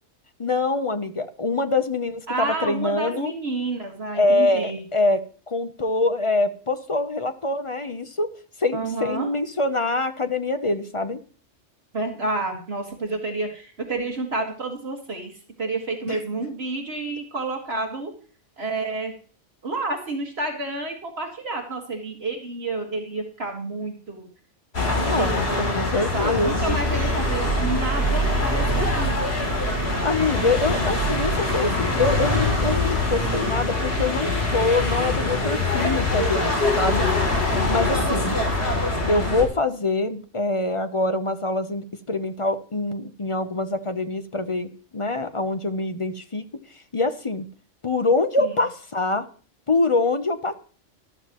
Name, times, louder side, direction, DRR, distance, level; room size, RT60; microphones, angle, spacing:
voice 1, 0.4-3.3 4.1-8.3 8.6-11.2 16.1-16.2 25.0-26.8 30.0-37.1 37.7-38.4 39.1-46.4 46.9-47.5 47.8-49.3 49.7-50.5, left 2 dB, 30° left, 9 dB, 0.7 m, -24 dB
voice 2, 2.3-4.8 8.7-9.3 11.9-18.1 18.6-19.1 19.6-24.3 24.9-25.9 26.1-29.2 37.5-38.1 48.4-48.6, right 2 dB, 55° right, 2 dB, 2.0 m, -30 dB
sound 1, 24.7-39.5, left 2 dB, 55° left, 3.3 m, -23 dB
13.0 x 12.5 x 3.0 m, 0.41 s
omnidirectional pair, 1.3 m